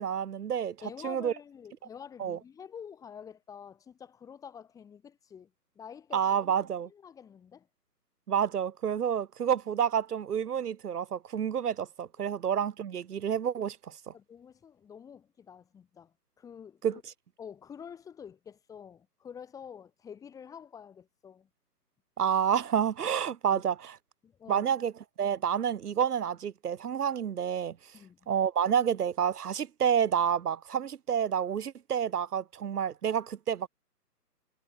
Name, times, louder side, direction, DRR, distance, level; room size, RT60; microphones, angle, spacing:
voice 1, 0.0-0.8 1.0-1.3 2.2-2.4 6.1-6.9 8.3-14.1 16.8-17.0 22.2-24.0 24.5-24.9 25.2-27.8 28.3-33.7, right 8 dB, 65° right, 1.1 m, -29 dB
voice 2, 0.8-5.5 5.8-6.3 6.8-7.7 12.2-12.3 14.1-17.0 17.4-21.5 23.5-23.6 24.2-24.7 27.9-28.2, left 7 dB, 5° left, 1.9 m, -48 dB
hypercardioid pair, 150°, 49 cm